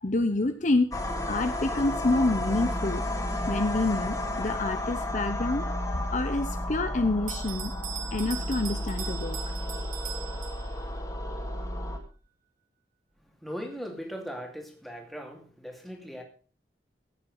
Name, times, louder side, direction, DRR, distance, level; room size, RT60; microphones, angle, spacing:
voice 1, 0.0-1.0 1.3-3.0 3.5-5.7 6.1-7.7 8.1-9.5, left 2 dB, 40° left, 9 dB, 0.8 m, -27 dB
sound 1, 0.9-12.0, left 1 dB, 20° left, 2.4 m, -32 dB
Bell, 7.3-11.0, right 9 dB, 45° right, 1.3 m, -40 dB
voice 2, 13.4-16.2, equal, ahead, 2 dB, 2.5 m, -39 dB
14.5 x 8.9 x 5.4 m, 0.39 s
head